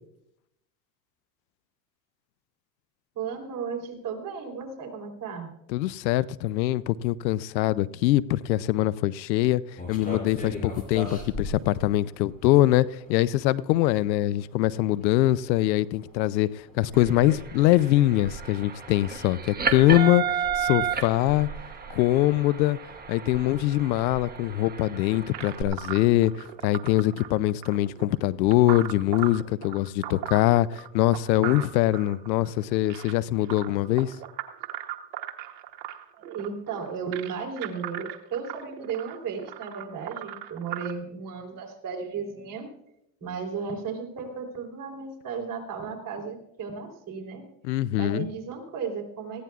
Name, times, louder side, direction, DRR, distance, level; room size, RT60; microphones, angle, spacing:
voice 1, 3.1-5.5 36.2-42.7 43.2-47.4 48.0-49.4, right 5 dB, 40° right, 3.7 m, -35 dB
voice 2, 5.7-9.6 9.9-21.5 21.9-22.8 23.1-34.1 47.6-48.3, left 15 dB, 90° left, 0.6 m, -23 dB
sound 1, 9.8-29.5, left 1 dB, 15° left, 5.1 m, -45 dB
sound 2, 16.9-25.6, right 7 dB, 20° right, 1.4 m, -33 dB
sound 3, 25.3-40.9, right 13 dB, 85° right, 1.1 m, -38 dB
19.5 x 15.5 x 2.4 m
supercardioid pair, 100°, 50 cm